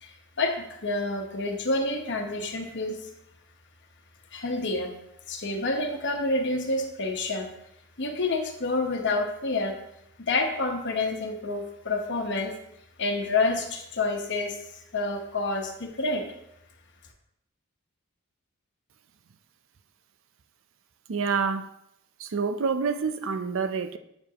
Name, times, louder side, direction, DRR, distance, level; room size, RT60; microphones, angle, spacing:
voice 1, 0.0-3.1 4.3-4.9 5.3-7.5 8.0-9.7 10.2-12.5 13.0-14.6 14.9-16.2, left 2 dB, 55° left, 1.1 m, -28 dB
voice 2, 21.1-21.7 22.2-24.0, right 5 dB, 65° right, 0.6 m, -27 dB
8.6 x 7.2 x 2.9 m
head